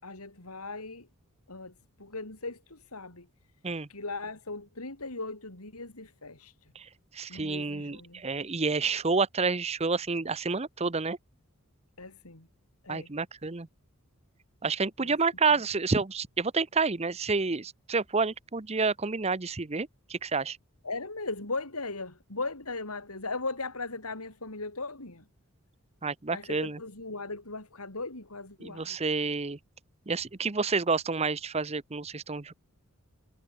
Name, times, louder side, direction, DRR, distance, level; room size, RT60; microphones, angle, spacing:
voice 1, 0.0-1.1 1.5-3.3 3.9-6.7 7.3-8.2 12.0-12.5 12.8-13.1 15.0-15.2 20.8-25.3 26.3-29.0, left 3 dB, 85° left, 4.5 m, -38 dB
voice 2, 6.7-11.2 12.9-13.7 14.6-20.6 26.0-26.8 28.6-29.6 30.1-32.5, right 4 dB, 30° right, 0.8 m, -29 dB
head